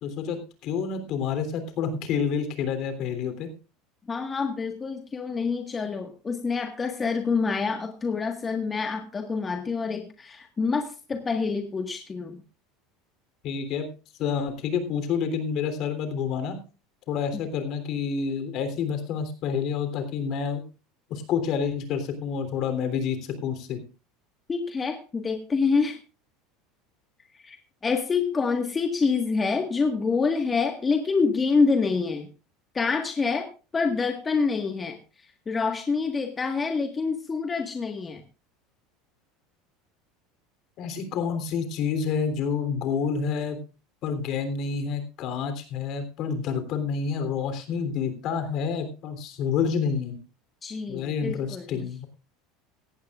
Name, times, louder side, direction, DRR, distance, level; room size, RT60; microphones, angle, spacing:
voice 1, 0.0-3.5 13.4-13.9 14.2-16.6 17.1-20.6 21.1-23.8 40.8-43.6 44.0-50.2 50.9-52.1, left 6 dB, 55° left, 8 dB, 3.3 m, -28 dB
voice 2, 4.1-12.4 24.5-26.0 27.3-27.6 27.8-32.3 32.7-33.5 33.7-38.2 50.6-51.9, left 4 dB, 20° left, 5 dB, 1.6 m, -27 dB
17.5 x 14.5 x 2.5 m, 0.33 s
supercardioid pair, 105°, 0 cm